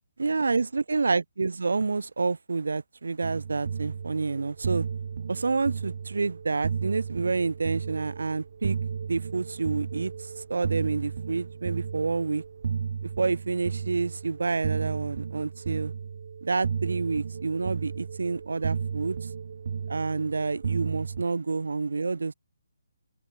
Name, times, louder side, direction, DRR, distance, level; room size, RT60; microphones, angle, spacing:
voice 1, 0.2-4.9 5.3-8.8 9.1-12.4 13.0-15.9 16.4-19.3 19.9-22.3, right 4 dB, 80° right, 0.5 m, -28 dB
sound 1, 3.2-21.2, right 6 dB, 45° right, 1.1 m, -34 dB
open air
hypercardioid pair, 175°, 0 cm